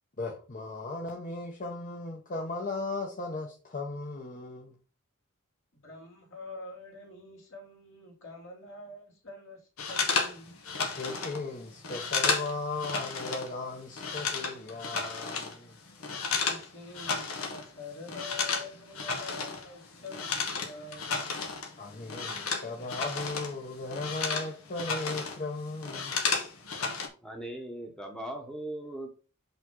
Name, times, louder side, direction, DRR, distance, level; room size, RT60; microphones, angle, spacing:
voice 1, 0.2-4.7 11.0-15.8 21.8-26.3, left 3 dB, 40° left, 1.1 m, -37 dB
voice 2, 5.7-10.6 16.4-21.1, left 3 dB, 65° left, 2.9 m, -46 dB
sound 1, 9.8-13.5 13.8-16.7 16.9-17.7 17.9-23.6 23.8-25.4 25.7-27.1, left 4 dB, 85° left, 1.5 m, -32 dB
voice 3, 27.2-29.1, right 1 dB, 5° left, 1.1 m, -39 dB
6.0 x 5.7 x 3.8 m
head